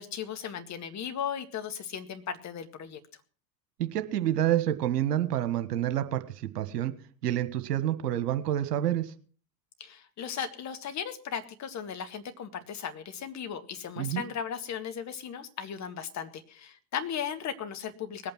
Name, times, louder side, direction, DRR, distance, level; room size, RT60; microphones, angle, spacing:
voice 1, 0.0-3.0 9.8-18.3, left 8 dB, 35° left, 8 dB, 2.0 m, -36 dB
voice 2, 3.8-6.2 6.5-6.9 7.2-9.1 14.0-14.2, right 12 dB, 70° right, 11 dB, 1.6 m, -28 dB
20.0 x 8.9 x 6.1 m, 0.41 s
figure-of-eight pair, 80°, 49 cm